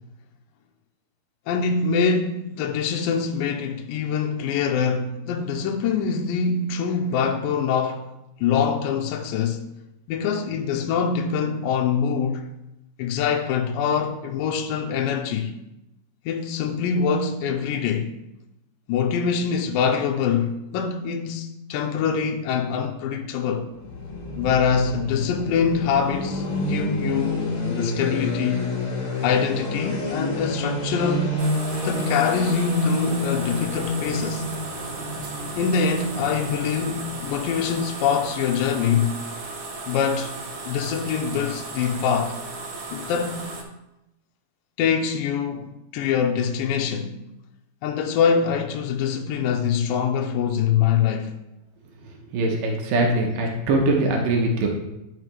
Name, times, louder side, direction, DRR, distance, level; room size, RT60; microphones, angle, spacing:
voice 1, 1.5-8.1 8.4-9.7 10.1-12.4 13.0-15.5 16.3-18.1 18.9-23.7 24.4-27.4 27.7-28.7 29.2-31.4 31.8-34.4 35.6-39.2 39.9-40.4 40.7-42.4 42.9-43.5 44.8-47.2 47.8-51.4, left 6 dB, 80° left, 2.3 m, -24 dB
sound 1, 23.7-37.6, left 2 dB, 55° left, 2.8 m, -29 dB
sound 2, 31.4-43.6, right 3 dB, 65° right, 1.4 m, -36 dB
voice 2, 52.0-54.7, right 2 dB, 80° right, 2.7 m, -22 dB
12.5 x 4.8 x 3.3 m
omnidirectional pair, 4.0 m